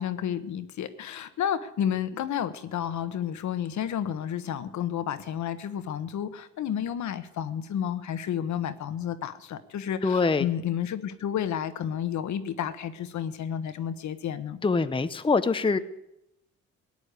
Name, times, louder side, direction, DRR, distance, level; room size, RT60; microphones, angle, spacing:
voice 1, 0.0-14.6, left 9 dB, 70° left, 11 dB, 1.3 m, -31 dB
voice 2, 10.0-10.5 14.6-15.8, left 4 dB, 15° left, 11 dB, 0.8 m, -24 dB
17.0 x 9.7 x 8.3 m, 0.87 s
cardioid pair, 90°, 30 cm